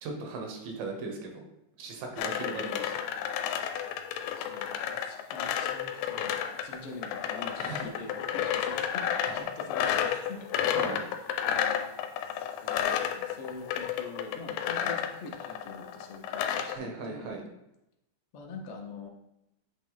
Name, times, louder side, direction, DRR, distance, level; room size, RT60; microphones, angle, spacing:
voice 1, 0.0-1.4 1.8-2.9 7.6-7.9 9.2-9.4 10.8-11.0 16.6-17.4, right 3 dB, 85° right, 2 dB, 2.8 m, -38 dB
sound 1, 2.2-16.8, left 9 dB, 90° left, 2.2 m, -31 dB
voice 2, 4.3-9.0 9.3-11.5 11.8-12.0 12.2-17.4 18.3-19.1, left 3 dB, 75° left, 0 dB, 1.3 m, -45 dB
8.0 x 3.1 x 3.9 m, 0.87 s
omnidirectional pair, 3.9 m